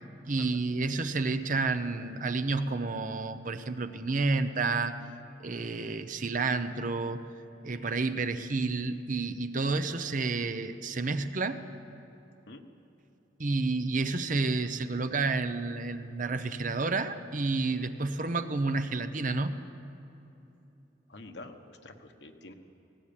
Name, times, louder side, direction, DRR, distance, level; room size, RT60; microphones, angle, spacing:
voice 1, 0.3-5.0 5.4-7.2 7.6-11.6 13.4-19.6, right 3 dB, 45° right, 10 dB, 0.8 m, -30 dB
voice 2, 21.1-22.5, left 2 dB, 65° left, 5 dB, 1.4 m, -47 dB
18.0 x 18.0 x 8.7 m, 2.9 s
head